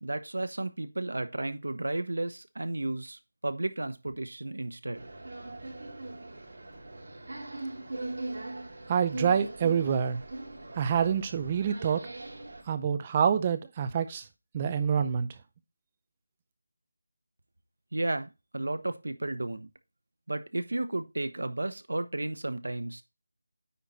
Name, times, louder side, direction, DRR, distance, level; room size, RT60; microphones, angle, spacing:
voice 1, 0.0-5.1 17.9-19.7 20.3-23.0, right 2 dB, 85° right, 1.0 m, -33 dB
sound 1, 4.9-12.6, right 2 dB, 55° right, 3.2 m, -40 dB
voice 2, 8.9-10.2 10.7-12.0 12.7-14.2 14.5-15.3, right 7 dB, 15° right, 0.5 m, -26 dB
9.3 x 4.2 x 4.3 m
figure-of-eight pair, 175°, 0 cm